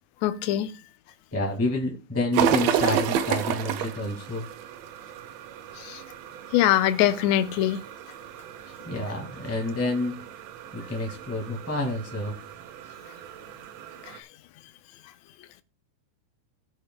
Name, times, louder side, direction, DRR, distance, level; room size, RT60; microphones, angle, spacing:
voice 1, 0.2-0.7 5.8-6.0 6.5-7.8, left 12 dB, 75° left, 1.8 m, -22 dB
voice 2, 1.3-4.5 8.8-10.2 10.7-12.4, left 2 dB, 5° left, 1.2 m, -29 dB
sound 1, 2.3-14.2, right 9 dB, 75° right, 1.7 m, -32 dB
16.5 x 6.9 x 2.2 m
omnidirectional pair, 3.5 m